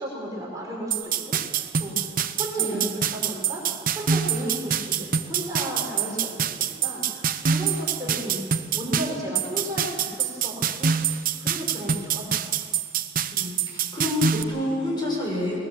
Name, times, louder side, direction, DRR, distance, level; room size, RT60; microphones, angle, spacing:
voice 1, 0.0-2.0 2.3-3.6 3.9-11.0 11.4-12.5, equal, 20° right, -4 dB, 5.5 m, -34 dB
sound 1, 0.9-14.4, right 7 dB, 50° right, 0.8 m, -26 dB
voice 2, 2.5-2.9 13.3-15.6, left 2 dB, 25° left, -3 dB, 6.3 m, -28 dB
20.5 x 20.5 x 7.4 m, 2.1 s
head